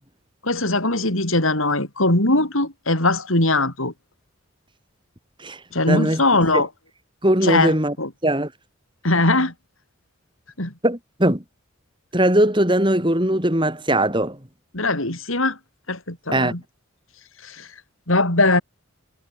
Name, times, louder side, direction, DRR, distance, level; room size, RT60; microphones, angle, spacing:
voice 1, 0.4-3.9 5.7-6.7 7.4-8.1 9.0-9.5 10.6-10.7 14.7-15.6 15.9-16.6 17.4-17.7 18.1-18.6, left 2 dB, 75° left, 7.4 m, -20 dB
voice 2, 5.9-6.2 6.5-6.6 7.2-7.9 8.2-8.5 10.8-11.4 12.1-14.4 16.3-16.5, right 1 dB, 20° right, 4.3 m, -20 dB
head